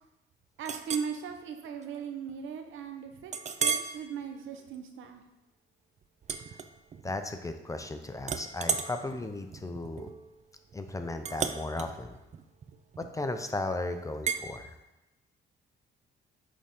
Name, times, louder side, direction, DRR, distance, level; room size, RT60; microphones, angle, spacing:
Chink clink, 0.6-1.1 1.6-1.8 2.3-2.4 3.3-4.0 4.5-4.7 6.2-7.2 7.5-7.9 8.2-13.3 14.3-14.5, right 6 dB, 35° right, 0.5 m, -35 dB
voice 1, 0.6-5.2, right 7 dB, 80° right, 5 dB, 0.9 m, -38 dB
voice 2, 7.0-10.1 10.7-12.2 13.0-14.7, left 2 dB, 15° left, 7 dB, 0.5 m, -35 dB
8.4 x 3.8 x 3.7 m, 0.97 s
cardioid pair, 90°, 20 cm